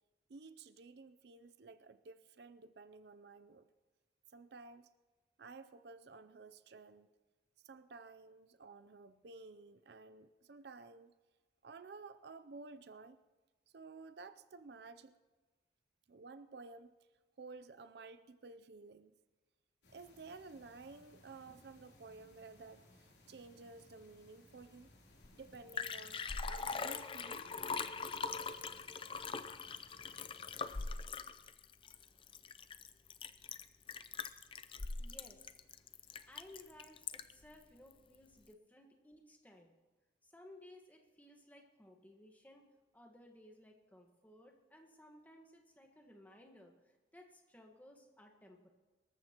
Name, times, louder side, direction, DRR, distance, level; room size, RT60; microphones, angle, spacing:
voice 1, 0.3-3.7 4.3-4.9 5.4-7.1 7.6-11.1 11.6-13.2 13.7-15.1 16.1-16.9 17.4-19.1 19.9-24.9 25.3-27.5, right 4 dB, 60° right, 12 dB, 0.5 m, -54 dB
sound 1, 19.8-31.0, left 1 dB, 65° left, 3.3 m, -64 dB
Liquid, 25.2-25.3 25.5-37.5 37.9-38.0, left 5 dB, 30° left, 0.4 m, -42 dB
voice 2, 35.0-35.6 36.3-39.7 40.2-42.6 42.9-48.7, left 1 dB, 10° left, 2 dB, 1.4 m, -59 dB
24.0 x 14.0 x 2.9 m, 1.3 s
head